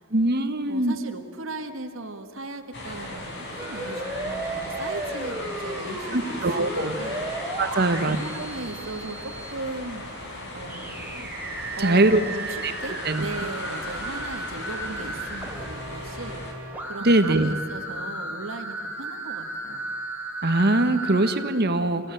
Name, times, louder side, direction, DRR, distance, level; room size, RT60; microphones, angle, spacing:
voice 1, 0.1-1.0 6.1-6.9 7.6-8.2 11.8-12.2 12.6-12.7 13.0-13.2 17.0-17.5 20.4-22.1, right 2 dB, 50° right, 9 dB, 1.4 m, -22 dB
voice 2, 0.7-7.3 7.8-10.0 10.5-11.3 11.7-19.9, right 2 dB, 70° right, 5 dB, 1.7 m, -37 dB
sound 1, 2.7-16.5, left 1 dB, 60° left, 5.4 m, -37 dB
sound 2, 3.6-9.5 10.7-21.4, right 2 dB, 10° right, 3.5 m, -35 dB
27.0 x 16.5 x 9.2 m, 2.4 s
head